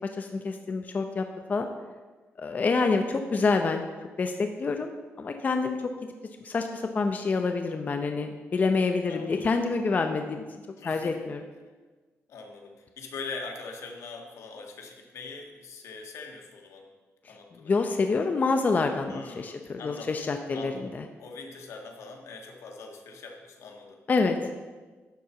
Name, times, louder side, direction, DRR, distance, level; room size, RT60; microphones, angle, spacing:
voice 1, 0.1-1.7 2.4-3.8 4.2-4.9 5.2-5.9 6.4-11.4 17.2-21.0 24.1-24.4, left 4 dB, 35° left, 5 dB, 0.6 m, -27 dB
voice 2, 9.1-9.5 10.8-11.2 12.3-16.9 17.3-17.8 19.1-20.2 20.5-20.9 21.2-24.0, left 4 dB, 85° left, 2 dB, 1.6 m, -42 dB
11.5 x 4.5 x 6.9 m, 1.3 s
cardioid pair, 130°, 5 cm